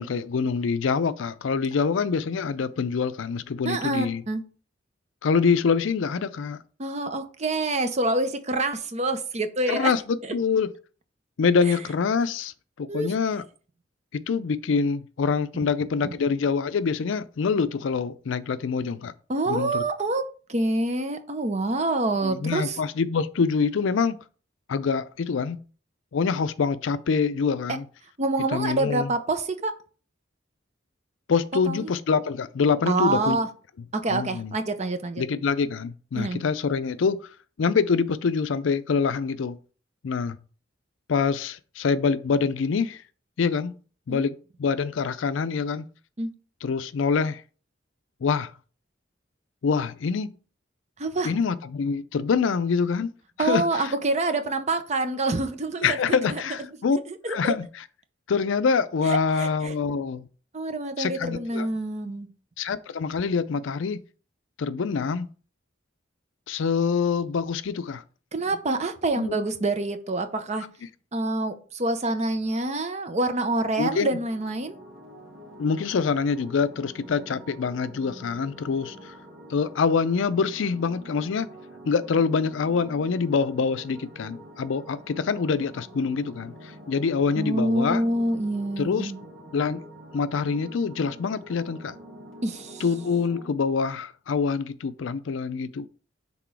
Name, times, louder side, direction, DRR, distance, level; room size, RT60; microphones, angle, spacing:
voice 1, 0.0-4.2 5.2-6.6 9.7-10.7 11.4-13.4 14.1-19.1 19.5-19.8 22.2-24.2 24.7-25.6 26.1-27.8 28.5-29.1 31.3-33.4 34.1-34.6 35.2-37.3 37.6-39.6 40.0-40.4 41.1-43.0 43.4-43.7 44.1-45.9 46.6-47.4 48.2-48.5 49.6-50.3 51.3-53.1 53.4-53.9 55.8-57.0 57.3-57.8 58.3-60.3 61.0-61.7 62.6-64.0 64.6-65.3 66.5-68.0 69.2-69.3 73.8-74.2 75.6-79.1 79.5-81.5 81.9-88.0 88.8-89.1 89.5-89.8 90.1-91.9 92.8-95.9, left 5 dB, 75° left, 0.4 m, -25 dB
voice 2, 3.6-4.4 6.8-9.9 10.2-10.4 11.7-11.8 12.9-13.1 16.0-16.2 19.3-22.8 28.2-29.7 31.7-31.9 32.9-33.5 33.9-35.2 36.1-36.4 44.1-44.3 46.2-46.3 51.0-51.3 53.4-56.5 57.1-57.5 59.0-59.7 60.5-62.3 68.3-70.7 71.1-74.8 87.4-89.2 92.4-92.8, right 2 dB, 35° right, 0.7 m, -27 dB
sound 1, 74.1-93.5, right 1 dB, 80° right, 1.8 m, -46 dB
6.0 x 3.6 x 4.6 m
head